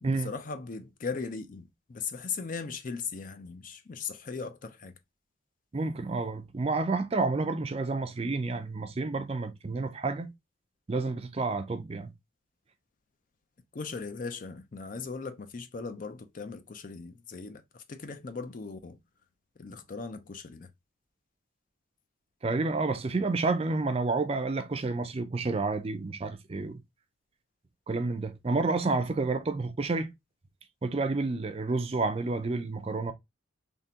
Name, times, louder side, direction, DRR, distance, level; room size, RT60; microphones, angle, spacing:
voice 1, 0.0-4.9 13.7-19.0 19.6-20.7, left 5 dB, 40° left, 0.4 m, -38 dB
voice 2, 5.7-10.3 10.9-12.1 22.4-26.8 27.9-30.1 30.8-33.1, right 3 dB, 30° right, 0.4 m, -30 dB
3.6 x 2.9 x 2.7 m
head